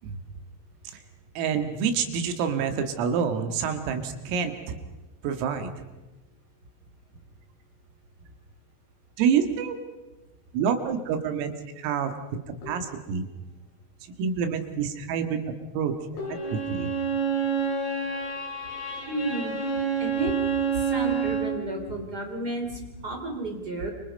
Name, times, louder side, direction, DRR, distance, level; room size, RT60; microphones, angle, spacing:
voice 1, 1.4-4.8 5.2-5.7 9.2-9.8 10.5-12.1 12.7-13.3 14.2-15.4 15.7-15.9 16.5-16.9, right 7 dB, 85° right, 7 dB, 4.5 m, -27 dB
sound 1, 12.6-13.2 16.2-17.1, left 1 dB, 80° left, 8.3 m, -39 dB
Bowed string instrument, 16.2-21.6, right 6 dB, 50° left, 9.9 m, -28 dB
voice 2, 19.1-19.6 20.0-20.3 20.8-23.9, right 2 dB, 25° right, 3 dB, 2.9 m, -32 dB
28.5 x 25.5 x 5.4 m, 1.1 s
omnidirectional pair, 5.9 m